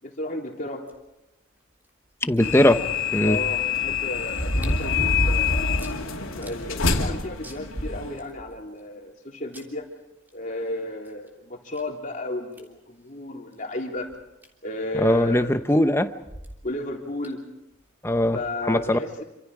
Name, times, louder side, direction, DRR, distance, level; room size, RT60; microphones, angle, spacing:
voice 1, 0.0-0.8 3.2-5.7 6.2-9.8 10.3-14.1 14.6-15.5 16.6-17.4 18.3-19.2, left 1 dB, 40° left, 0 dB, 3.8 m, -33 dB
voice 2, 2.2-2.8 3.1-3.4 14.9-16.1 18.0-18.4 18.6-19.0, left 1 dB, 10° left, 9 dB, 0.9 m, -20 dB
sound 1, 2.4-8.2, left 7 dB, 80° left, 2.8 m, -27 dB
sound 2, 2.4-2.5 4.3-6.0 6.4-6.5 7.0-7.1 7.4-8.5 9.5-9.6 11.1-11.2 11.7-11.8 12.6-12.8 14.1-14.2 14.4-14.5 16.2-16.5 17.2-17.3, equal, 10° right, 3.4 m, -27 dB
28.0 x 26.5 x 5.0 m, 0.90 s
head